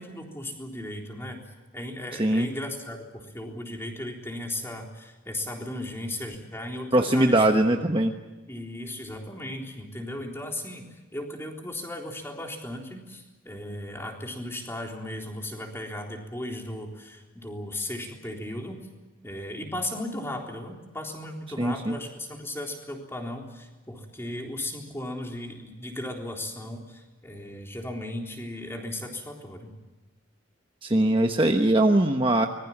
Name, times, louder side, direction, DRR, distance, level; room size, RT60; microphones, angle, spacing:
voice 1, 0.0-1.4 1.7-7.6 8.5-18.8 19.2-29.8, left 1 dB, 10° left, 1 dB, 3.8 m, -36 dB
voice 2, 6.9-8.1 21.6-22.0 30.8-32.5, right 1 dB, 25° right, 4 dB, 1.1 m, -21 dB
25.0 x 21.0 x 7.4 m, 1.1 s
head